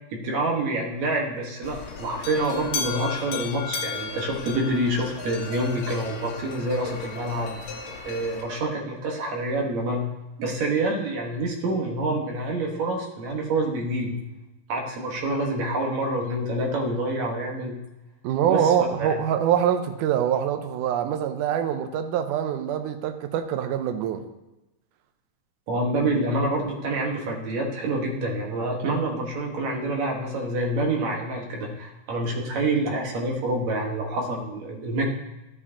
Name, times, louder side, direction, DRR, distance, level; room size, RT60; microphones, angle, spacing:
voice 1, 0.1-7.6 8.1-10.1 10.4-14.1 14.7-17.8 18.5-18.7 19.0-19.1 25.7-35.1, right 1 dB, 65° right, 0 dB, 2.6 m, -27 dB
sound 1, 1.6-8.4, left 5 dB, 65° left, 2.2 m, -35 dB
voice 2, 18.2-24.2, right 9 dB, 80° right, 6 dB, 2.2 m, -24 dB
13.0 x 7.3 x 2.9 m, 1.0 s
omnidirectional pair, 3.7 m